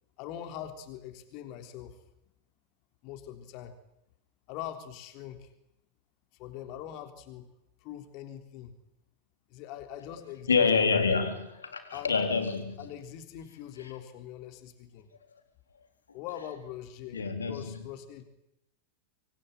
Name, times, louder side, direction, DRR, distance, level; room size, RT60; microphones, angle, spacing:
voice 1, 0.2-2.0 3.0-3.7 4.5-5.5 6.4-7.5 7.8-8.7 9.5-10.7 11.9-12.2 12.8-15.1 16.1-18.2, left 10 dB, 40° left, 8 dB, 3.7 m, -42 dB
voice 2, 10.5-12.9 13.8-13.9 17.1-17.8, left 5 dB, 75° left, 7 dB, 4.0 m, -27 dB
26.0 x 21.5 x 9.3 m, 0.85 s
figure-of-eight pair, 90°, 0 cm